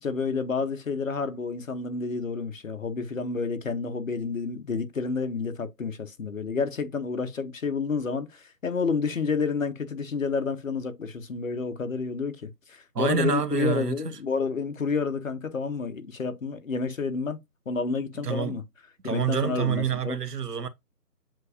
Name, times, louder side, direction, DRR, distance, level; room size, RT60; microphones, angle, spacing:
voice 1, 0.0-17.4 17.7-18.6 19.0-20.2, left 5 dB, 55° left, 0.8 m, -29 dB
voice 2, 12.9-14.0 18.2-18.6 19.0-20.7, right 8 dB, 70° right, 0.8 m, -27 dB
7.4 x 2.6 x 2.5 m
figure-of-eight pair, 160°, 48 cm